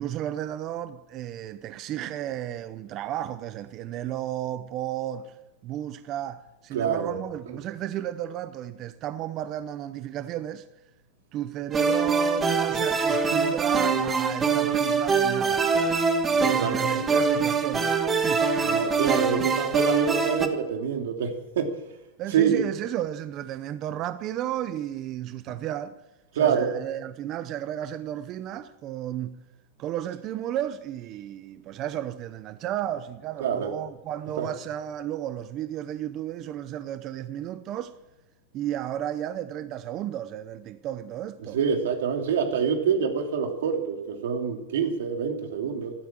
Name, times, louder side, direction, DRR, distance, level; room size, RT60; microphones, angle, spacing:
voice 1, 0.0-5.3 5.6-10.6 11.3-15.7 16.3-18.4 22.2-26.0 26.4-29.4 29.8-37.9 38.5-41.6, right 11 dB, 35° right, 0.7 m, -33 dB
voice 2, 6.7-7.1 16.4-17.2 18.6-21.7 22.3-22.7 26.3-26.7 33.4-33.7 34.4-34.5 41.5-45.9, right 7 dB, 90° right, 2.9 m, -26 dB
sound 1, 11.7-20.5, right 5 dB, 15° right, 1.3 m, -24 dB
13.5 x 12.5 x 7.5 m
supercardioid pair, 160°, 0 cm